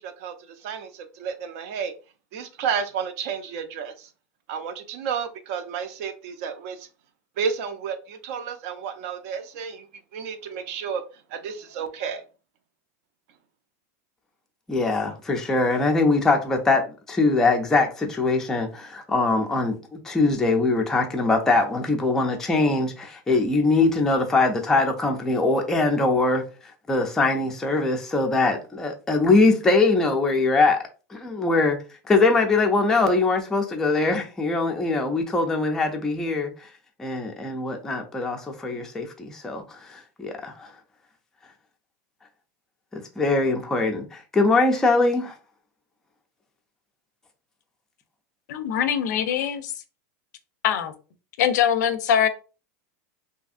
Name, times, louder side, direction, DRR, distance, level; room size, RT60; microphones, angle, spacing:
voice 1, 0.0-1.9 2.3-4.1 4.5-6.9 7.4-9.9 10.1-11.0 11.3-12.2, right 7 dB, 60° right, 0.4 m, -31 dB
voice 2, 14.7-30.8 31.1-31.8 32.1-36.7 37.0-40.7 42.9-45.3, left 3 dB, 5° left, 0.3 m, -22 dB
voice 3, 48.5-49.7 50.6-50.9 51.4-52.3, left 9 dB, 80° left, 0.5 m, -22 dB
2.7 x 2.5 x 2.4 m
supercardioid pair, 155°, 9 cm